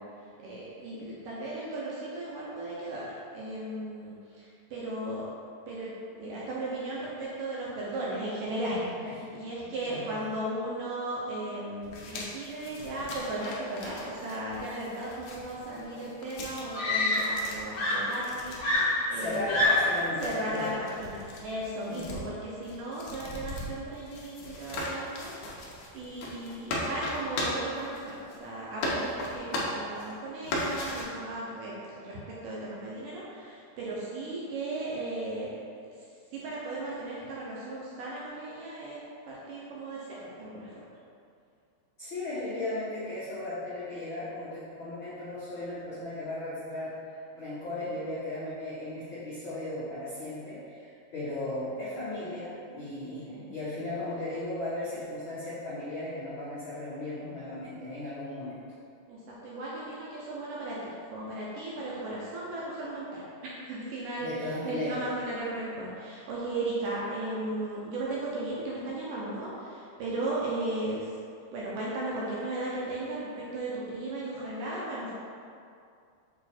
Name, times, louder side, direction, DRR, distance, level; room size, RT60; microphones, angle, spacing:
voice 1, 0.0-5.3 5.7-19.7 20.2-25.4 25.9-35.6 35.9-39.0 39.3-40.9 53.4-53.5 59.1-71.1 71.5-75.1, right 2 dB, 75° right, -6 dB, 2.1 m, -36 dB
voice 2, 9.9-10.2 19.1-20.7 21.9-22.3 42.0-46.9 47.3-58.6 64.2-65.0, left 2 dB, 75° left, -13 dB, 1.1 m, -36 dB
sound 1, 11.8-28.5 28.8-30.1 30.4-31.0, left 1 dB, 90° left, 1.6 m, -38 dB
Screaming, 15.9-16.0 16.7-17.5 17.7-20.0 21.0-21.3, left 2 dB, 50° left, 2.2 m, -27 dB
6.9 x 3.2 x 4.3 m, 2.4 s
omnidirectional pair, 4.5 m